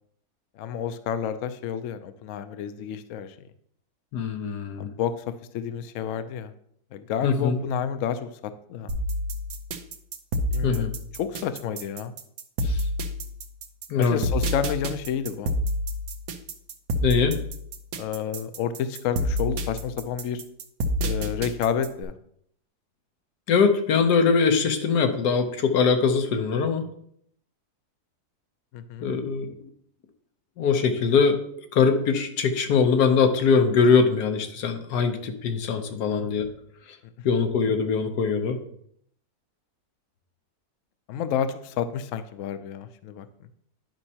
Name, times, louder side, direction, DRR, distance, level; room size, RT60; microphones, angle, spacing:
voice 1, 0.6-3.3 4.8-5.1 5.5-6.5 6.9-8.3 8.7-8.9 10.5-10.9 11.2-12.1 14.0-15.5 18.0-20.4 21.0-22.1 28.7-29.1 36.1-36.3 41.1-43.3, left 8 dB, 65° left, 11 dB, 0.8 m, -30 dB
voice 2, 4.1-4.9 7.2-7.6 10.6-10.9 12.6-12.8 13.9-14.2 17.0-17.4 23.5-26.8 29.0-29.5 30.6-31.4 31.7-36.5 37.2-38.6, left 5 dB, 90° left, 6 dB, 1.4 m, -22 dB
sound 1, 8.9-22.0, equal, 90° right, 1.3 m, -28 dB
10.5 x 5.4 x 2.8 m, 0.68 s
omnidirectional pair, 1.7 m